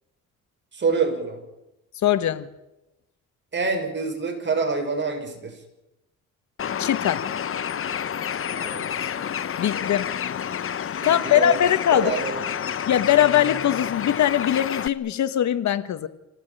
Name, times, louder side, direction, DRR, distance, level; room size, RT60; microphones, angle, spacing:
voice 1, 0.7-1.4 3.5-5.6 8.5-8.9 11.0-11.6 11.9-12.4, right 4 dB, 35° right, 4 dB, 6.9 m, -26 dB
voice 2, 2.0-2.5 6.8-7.2 9.6-10.1 11.0-12.1 12.9-16.1, left 11 dB, 65° left, 12 dB, 1.6 m, -21 dB
Bird, 6.6-14.9, left 8 dB, 45° left, 1.1 m, -29 dB
27.0 x 18.0 x 9.3 m, 0.95 s
cardioid pair, 90°, 30 cm